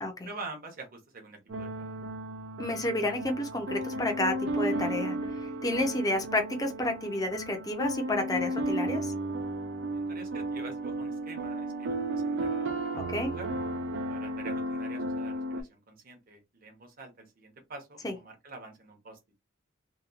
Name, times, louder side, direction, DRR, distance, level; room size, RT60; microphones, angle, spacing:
voice 1, 0.2-2.0 9.9-13.5 14.1-19.2, right 3 dB, 45° right, 0.9 m, -46 dB
sound 1, 1.5-15.6, right 1 dB, 65° right, 0.5 m, -34 dB
voice 2, 2.6-5.2 5.4-9.1 13.0-13.3 18.0-18.1, left 1 dB, 20° left, 0.6 m, -30 dB
2.8 x 2.3 x 2.4 m
head